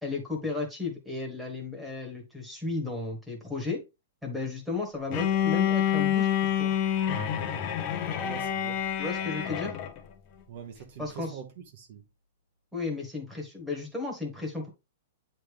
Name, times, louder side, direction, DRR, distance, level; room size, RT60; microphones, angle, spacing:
voice 1, 0.0-3.8 4.2-6.7 9.0-9.7 11.0-11.4 12.7-14.7, left 3 dB, ahead, 1.4 m, -34 dB
Bowed string instrument, 5.1-10.0, left 9 dB, 25° left, 0.7 m, -27 dB
voice 2, 8.2-8.9 10.5-12.0, right 7 dB, 45° right, 1.0 m, -44 dB
8.8 x 3.3 x 3.4 m
hypercardioid pair, 170°, 0 cm